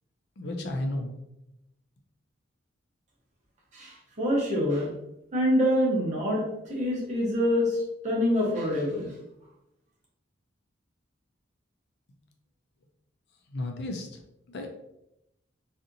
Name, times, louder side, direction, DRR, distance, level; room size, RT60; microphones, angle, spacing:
voice 1, 0.4-1.1 13.5-14.1 14.5-14.7, left 1 dB, 55° left, 3 dB, 0.4 m, -32 dB
voice 2, 3.7-4.9 5.3-6.4 6.7-9.1, equal, 35° right, -4 dB, 0.8 m, -26 dB
2.7 x 2.5 x 2.5 m, 0.84 s
head